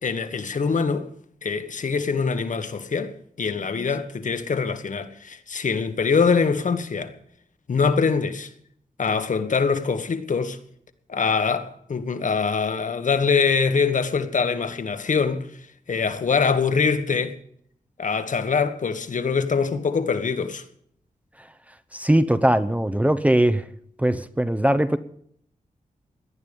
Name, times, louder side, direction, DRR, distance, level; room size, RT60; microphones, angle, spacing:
voice 1, 0.0-1.1 1.4-7.1 7.7-8.5 9.0-10.6 11.1-15.5 15.9-17.4 18.0-20.6, left 5 dB, 65° left, 1.5 m, -23 dB
voice 2, 21.9-23.6 24.0-25.0, right 1 dB, 10° right, 0.8 m, -20 dB
18.0 x 11.5 x 5.3 m
wide cardioid pair, 100°, 14 cm